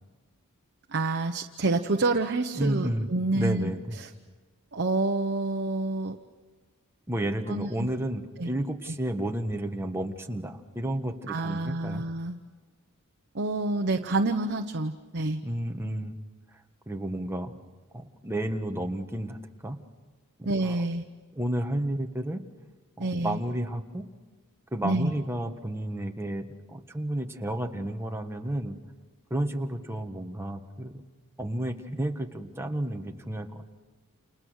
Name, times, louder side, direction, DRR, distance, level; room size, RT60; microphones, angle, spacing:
voice 1, 0.9-3.7 4.0-4.1 4.7-6.2 7.5-7.9 8.4-8.5 8.9-9.0 11.3-12.4 13.3-15.4 20.4-21.0 23.0-23.4 24.8-25.1, right 2 dB, 50° right, 5 dB, 1.0 m, -28 dB
voice 2, 2.5-4.0 7.1-12.0 15.4-16.1 16.9-17.5 17.9-19.4 19.6-19.8 20.4-20.8 21.3-22.4 23.0-24.0 24.7-28.8 29.3-31.0 31.4-33.6, right 1 dB, 10° right, 4 dB, 1.5 m, -31 dB
29.5 x 29.0 x 6.5 m, 1.4 s
head